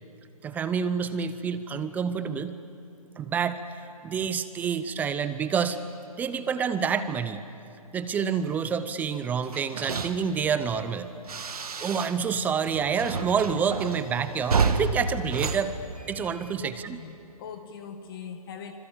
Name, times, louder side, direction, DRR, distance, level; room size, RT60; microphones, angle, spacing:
voice 1, 0.4-2.6 3.2-5.8 6.2-7.4 7.9-11.1 11.8-15.8 16.1-17.0, right 6 dB, 10° right, 12 dB, 0.6 m, -28 dB
sound 1, 9.4-12.4 12.6-16.5, right 4 dB, 75° right, 2.1 m, -30 dB
voice 2, 16.6-18.7, left 7 dB, 35° left, 6 dB, 1.7 m, -41 dB
26.0 x 26.0 x 8.7 m, 2.7 s
hypercardioid pair, 145°, 19 cm